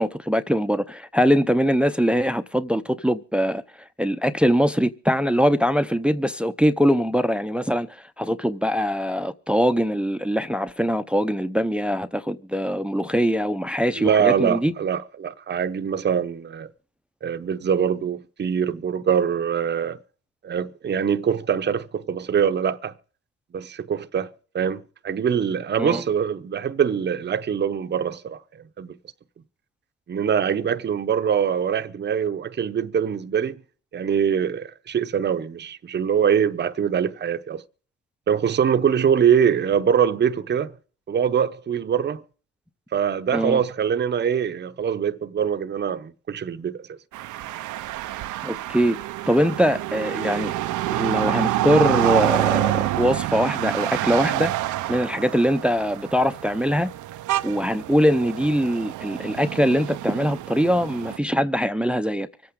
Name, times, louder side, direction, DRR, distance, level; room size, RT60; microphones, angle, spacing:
voice 1, 0.0-3.6 4.0-14.7 25.8-26.0 43.3-43.6 48.4-49.0 49.3-50.5 50.9-54.5 54.9-56.9 57.4-62.3, equal, 5° right, 0.6 m, -22 dB
voice 2, 14.0-16.7 17.2-20.0 20.4-22.9 23.5-28.4 28.8-28.9 30.1-33.6 33.9-37.6 38.3-40.7 41.1-42.2 42.9-47.0, right 8 dB, 35° right, 0.8 m, -23 dB
sound 1, 47.1-61.2, right 15 dB, 75° right, 0.6 m, -27 dB
25.0 x 8.7 x 3.6 m
cardioid pair, 90°, 30 cm